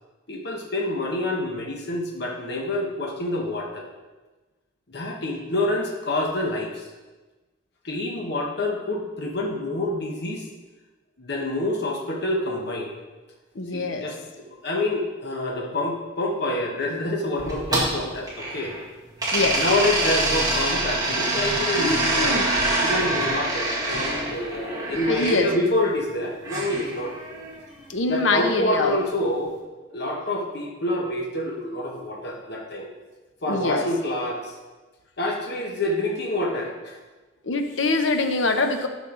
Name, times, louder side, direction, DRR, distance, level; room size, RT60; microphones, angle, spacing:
voice 1, 0.3-3.8 4.9-6.9 7.8-10.5 11.2-12.9 13.7-14.2 14.6-18.8 19.6-27.1 28.1-29.6 29.9-32.9 33.4-34.5 35.2-37.0, left 1 dB, 60° left, 0 dB, 1.2 m, -27 dB
voice 2, 13.5-14.1 19.3-19.6 21.8-22.5 25.1-25.5 27.9-29.0 33.5-33.9 37.4-38.9, left 3 dB, 80° left, 6 dB, 0.8 m, -24 dB
sound 1, 17.4-18.8 19.2-25.4 26.4-27.6, right 2 dB, 20° right, 2.1 m, -25 dB
12.0 x 5.3 x 3.8 m, 1.2 s
head